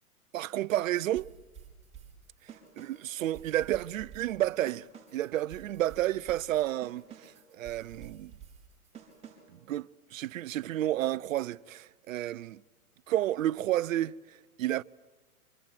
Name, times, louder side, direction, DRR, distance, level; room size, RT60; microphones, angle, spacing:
voice 1, 0.3-1.3 2.8-4.9 5.1-8.3 9.5-12.6 13.1-14.2 14.6-14.8, right 13 dB, 60° right, 0.8 m, -31 dB
sound 1, 1.1-9.6, right 7 dB, 15° right, 5.1 m, -51 dB
26.5 x 25.5 x 7.7 m
hypercardioid pair, 140°, 44 cm